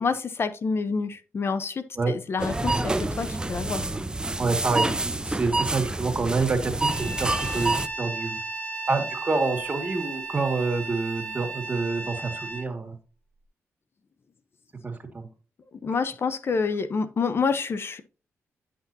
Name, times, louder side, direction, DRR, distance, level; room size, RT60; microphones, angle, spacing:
voice 1, 0.0-3.8 15.7-18.0, left 5 dB, 50° left, 12 dB, 0.7 m, -28 dB
sound 1, 2.4-7.9, right 2 dB, 15° right, 0.6 m, -28 dB
voice 2, 4.4-8.4 8.9-12.9 14.8-15.3, right 3 dB, 30° right, 5 dB, 2.0 m, -27 dB
Bowed string instrument, 6.8-12.7, right 3 dB, 25° left, 1.3 m, -35 dB
10.0 x 6.0 x 2.7 m, 0.35 s
cardioid pair, 80°, 5 cm